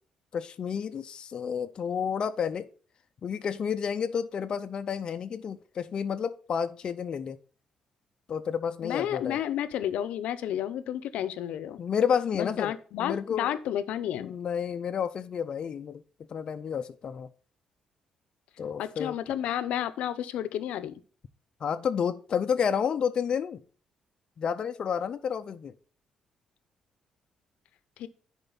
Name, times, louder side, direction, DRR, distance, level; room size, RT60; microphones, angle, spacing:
voice 1, 0.3-2.7 3.2-7.4 8.3-9.4 11.8-12.7 13.0-13.5 14.2-16.0 16.3-17.3 18.6-19.1 21.6-23.6 24.4-25.7, left 7 dB, 45° left, 0.5 m, -30 dB
voice 2, 8.8-11.8 12.3-14.4 18.8-21.0 28.0-28.1, left 11 dB, 85° left, 0.7 m, -31 dB
10.0 x 4.5 x 4.0 m
cardioid pair, 135°, 2 cm